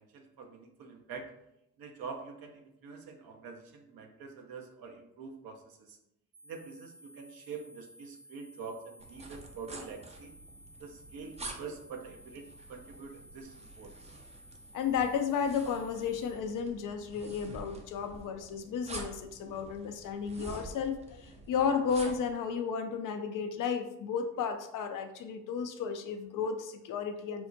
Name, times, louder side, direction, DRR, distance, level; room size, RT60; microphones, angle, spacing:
voice 1, 0.0-1.3 1.8-6.0 6.4-10.3 10.8-13.9, right 5 dB, 50° right, 4 dB, 0.7 m, -45 dB
sound 1, 6.3-16.3, equal, 75° right, 1.2 m, -56 dB
sound 2, 9.0-22.3, right 2 dB, 15° right, 0.5 m, -48 dB
voice 2, 14.7-27.5, left 6 dB, 45° left, 6 dB, 0.4 m, -33 dB
4.3 x 2.1 x 2.6 m, 0.83 s
hypercardioid pair, 45°, 45 cm